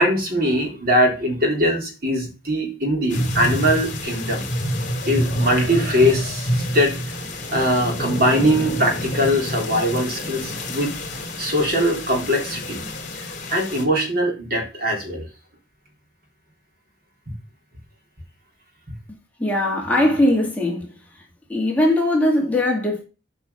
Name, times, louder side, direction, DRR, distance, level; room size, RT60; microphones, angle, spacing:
voice 1, 0.0-4.4 5.0-7.0 7.5-10.9 11.4-12.8 13.5-15.3 18.9-19.0, equal, 50° right, 3.6 m, -21 dB
sound 1, 3.1-13.8, equal, 40° left, 3.0 m, -27 dB
voice 2, 19.4-21.2 21.5-23.0, left 1 dB, 10° left, 2.2 m, -20 dB
8.6 x 5.5 x 6.9 m
head